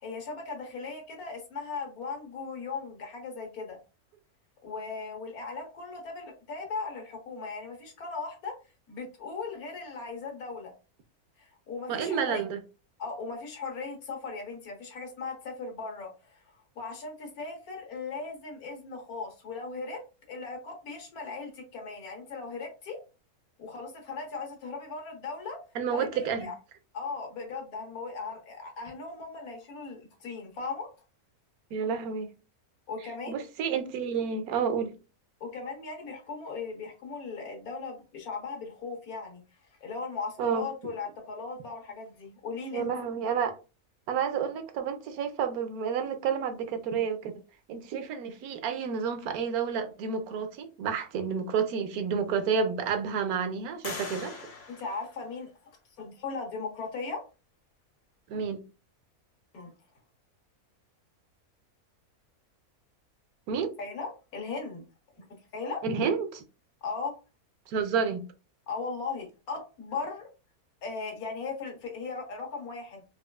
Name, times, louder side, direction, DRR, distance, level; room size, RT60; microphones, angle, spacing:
voice 1, 0.0-3.8 4.6-8.5 8.9-10.7 11.4-12.4 13.0-16.4 16.7-20.0 20.3-23.0 23.6-25.6 25.9-26.5 26.9-30.9 32.9-33.4 35.4-39.4 39.8-42.9 54.7-55.5 56.0-57.2 59.5-59.7 63.8-64.8 65.2-65.3 65.5-65.8 66.8-67.1 68.7-70.3 70.8-73.0, left 4 dB, 80° left, 1.5 m, -38 dB
voice 2, 11.9-12.6 25.7-26.5 31.7-32.3 33.3-34.9 40.4-40.6 42.7-43.6 44.1-47.4 47.7-54.4 58.3-58.6 63.5-63.7 65.8-66.4 67.7-68.2, right 6 dB, 90° right, 1.1 m, -30 dB
sound 1, 51.6-51.7 52.3-52.9 53.8-55.8, left 4 dB, 50° left, 1.0 m, -43 dB
4.3 x 2.3 x 2.2 m
omnidirectional pair, 1.5 m